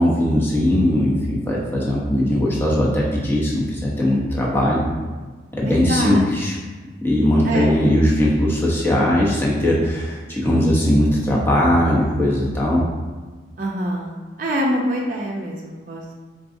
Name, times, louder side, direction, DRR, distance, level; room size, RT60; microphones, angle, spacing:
voice 1, 0.0-4.9 5.5-6.5 7.0-12.8, left 1 dB, 10° left, -5 dB, 0.8 m, -19 dB
voice 2, 5.6-6.3 7.4-7.8 13.6-16.1, equal, 45° right, -3 dB, 0.5 m, -25 dB
4.6 x 3.7 x 2.6 m, 1.4 s
head